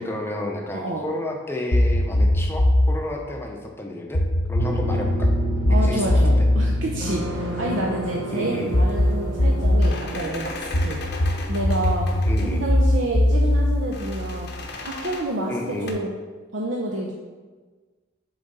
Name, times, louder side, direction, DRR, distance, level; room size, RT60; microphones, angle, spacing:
voice 1, 0.0-4.2 4.5-5.3 5.7-6.5 8.3-8.7 12.3-12.7 15.5-16.0, left 1 dB, 10° left, 1 dB, 0.7 m, -31 dB
voice 2, 0.7-1.0 5.7-11.0 11.5-12.1 12.4-14.5 14.8-16.1 16.5-17.1, right 1 dB, 70° right, -1 dB, 0.7 m, -28 dB
sound 1, 1.7-3.0 4.1-7.9 8.7-10.0 10.7-14.7, left 1 dB, 75° left, 1.0 m, -21 dB
sound 2, 4.6-10.2, right 1 dB, 20° right, 1.7 m, -30 dB
sound 3, 8.3-15.9, left 3 dB, 55° left, 0.8 m, -38 dB
7.1 x 3.9 x 4.0 m, 1.3 s
head